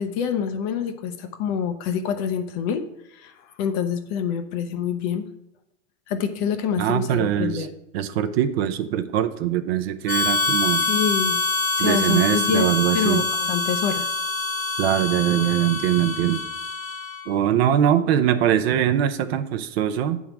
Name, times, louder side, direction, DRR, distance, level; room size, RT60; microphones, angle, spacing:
voice 1, 0.0-2.8 3.1-5.3 6.1-7.7 10.9-11.4 11.8-14.2, left 7 dB, 35° left, 9 dB, 0.6 m, -26 dB
voice 2, 6.8-7.7 7.9-10.9 11.8-13.2 14.8-16.4 17.3-20.2, right 10 dB, 50° right, 9 dB, 0.6 m, -22 dB
Harmonica, 10.1-17.3, left 3 dB, 5° left, 1.0 m, -25 dB
8.6 x 3.7 x 5.9 m, 0.85 s
hypercardioid pair, 135°, 40 cm